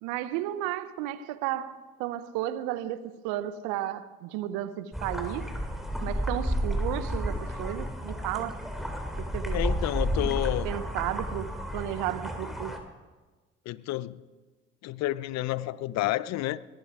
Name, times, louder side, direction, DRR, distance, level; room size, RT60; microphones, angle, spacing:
voice 1, 0.0-5.5 6.0-8.6 9.2-9.6 10.6-12.7, right 13 dB, 70° right, 0.9 m, -33 dB
sound 1, 4.9-12.8, equal, ahead, 2.9 m, -31 dB
voice 2, 9.5-10.7 13.7-14.2 14.8-16.6, left 16 dB, 60° left, 0.6 m, -30 dB
20.0 x 12.0 x 4.9 m
hypercardioid pair, 55°, 31 cm